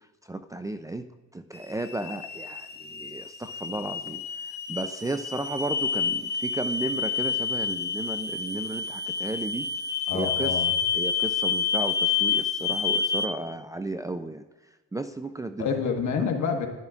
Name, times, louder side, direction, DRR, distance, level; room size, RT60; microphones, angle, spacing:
voice 1, 0.3-1.1 1.3-4.2 4.7-9.7 10.1-10.5 10.9-14.4 14.9-15.7 16.2-16.3, right 2 dB, 10° right, 7 dB, 0.4 m, -34 dB
sound 1, 1.5-13.3, left 6 dB, 35° left, 0.9 m, -29 dB
voice 2, 10.1-10.7 15.6-16.7, left 6 dB, 70° left, 3 dB, 1.5 m, -27 dB
12.0 x 11.0 x 2.5 m, 1.2 s
cardioid pair, 90°, 30 cm